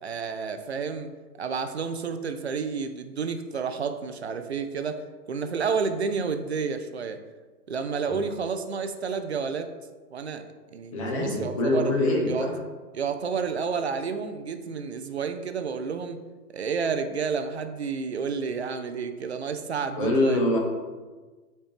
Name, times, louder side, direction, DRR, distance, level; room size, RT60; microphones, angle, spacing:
voice 1, 0.0-1.1 1.4-7.2 7.7-9.7 10.1-10.4 10.7-11.9 12.3-12.5 12.9-16.2 16.5-20.4, right 5 dB, 45° right, 8 dB, 0.5 m, -30 dB
voice 2, 10.9-12.5 19.9-20.6, left 2 dB, 20° left, 0 dB, 0.8 m, -24 dB
8.6 x 4.3 x 3.4 m, 1.3 s
hypercardioid pair, 155°, 48 cm